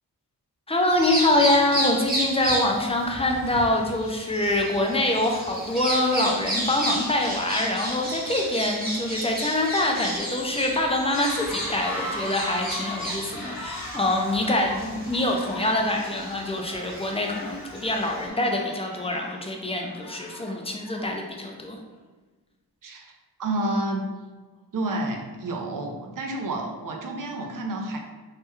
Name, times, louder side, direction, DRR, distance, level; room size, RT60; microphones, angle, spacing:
voice 1, 0.7-21.8, left 1 dB, 15° left, 0 dB, 0.3 m, -25 dB
Bird vocalization bird call bird song, 0.9-18.3, equal, 25° right, 0.8 m, -33 dB
sound 1, 5.3-21.3, left 1 dB, 65° left, 0.7 m, -40 dB
voice 2, 22.8-23.1 23.4-24.1 24.7-28.0, right 1 dB, 55° right, 2 dB, 0.5 m, -29 dB
3.2 x 2.2 x 3.0 m, 1.2 s
wide cardioid pair, 120°, 40 cm